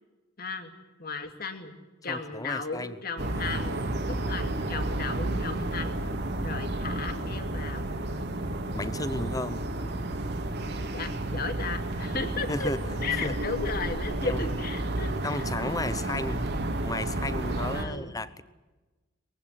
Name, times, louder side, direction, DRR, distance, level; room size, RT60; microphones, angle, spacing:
voice 1, 0.4-0.7 1.0-1.8 2.0-6.1 6.4-7.9 10.9-12.7 13.0-15.9 16.3-16.4 17.7-18.1, left 4 dB, 50° left, 7 dB, 2.4 m, -35 dB
voice 2, 2.1-3.0 8.7-9.6 12.5-13.4 14.2-14.4 15.2-16.5 16.8-18.4, left 2 dB, 20° left, 15 dB, 0.9 m, -34 dB
sound 1, 3.2-17.8, right 1 dB, 55° right, 2.3 m, -31 dB
22.0 x 16.0 x 9.8 m, 1.2 s
head